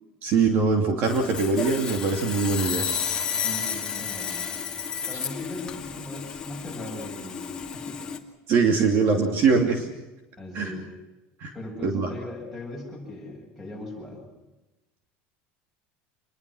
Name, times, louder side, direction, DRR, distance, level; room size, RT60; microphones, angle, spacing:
voice 1, 0.2-2.9 8.5-9.9 10.5-10.7 11.4-11.5 11.8-12.1, right 4 dB, 40° right, 4 dB, 2.8 m, -22 dB
Sawing, 1.0-8.2, left 7 dB, 15° left, 2.3 m, -32 dB
voice 2, 3.3-4.6 5.1-8.0 10.4-10.9 11.5-14.3, left 2 dB, ahead, 2 dB, 7.9 m, -39 dB
27.5 x 22.0 x 6.4 m, 1.0 s
cardioid pair, 175°, 5 cm